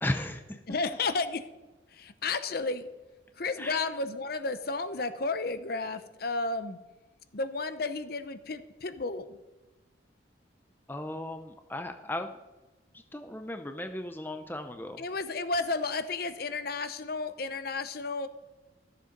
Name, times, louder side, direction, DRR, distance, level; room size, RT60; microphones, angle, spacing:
voice 1, 0.0-0.8 3.6-3.9 10.9-12.4 12.9-15.0, left 1 dB, 10° left, 6 dB, 0.6 m, -36 dB
voice 2, 0.7-1.4 1.9-2.9 3.4-6.8 7.3-9.4 15.0-18.3, left 3 dB, 50° left, 10 dB, 0.7 m, -32 dB
13.5 x 7.4 x 5.2 m, 1.1 s
head